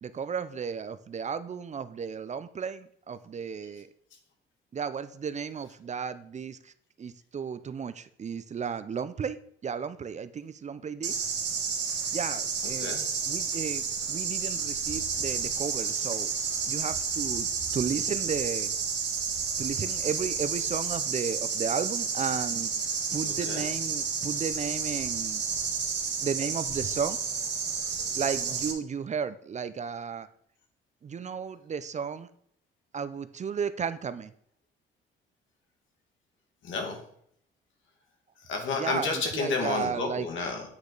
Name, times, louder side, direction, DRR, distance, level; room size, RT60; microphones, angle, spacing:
voice 1, 0.0-3.9 4.7-6.7 7.0-9.4 9.6-11.2 12.1-12.9 13.3-16.3 16.7-18.7 19.6-22.7 23.1-25.4 26.2-27.2 28.1-30.3 31.0-32.3 32.9-34.3 38.8-40.3, right 6 dB, 35° right, 13 dB, 0.5 m, -34 dB
sound 1, 11.0-28.7, right 6 dB, 60° right, 1.6 m, -31 dB
voice 2, 12.8-13.3 23.2-23.6 36.6-37.0 38.5-40.6, left 4 dB, 75° left, 3 dB, 2.0 m, -31 dB
8.6 x 5.0 x 4.0 m, 0.68 s
cardioid pair, 90°, 20 cm